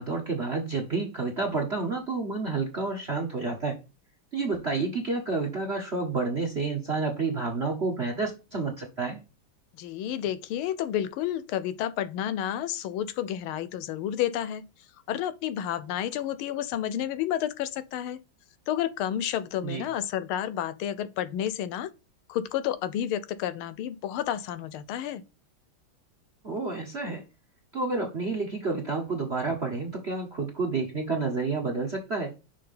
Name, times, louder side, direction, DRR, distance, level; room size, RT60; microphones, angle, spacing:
voice 1, 0.0-3.8 4.3-9.2 19.6-19.8 26.4-27.2 27.7-32.3, right 3 dB, 40° right, 1.1 m, -29 dB
voice 2, 9.7-14.6 15.1-18.2 18.7-21.9 22.3-25.2, left 11 dB, 80° left, 1.5 m, -30 dB
5.7 x 3.5 x 5.4 m
omnidirectional pair, 2.3 m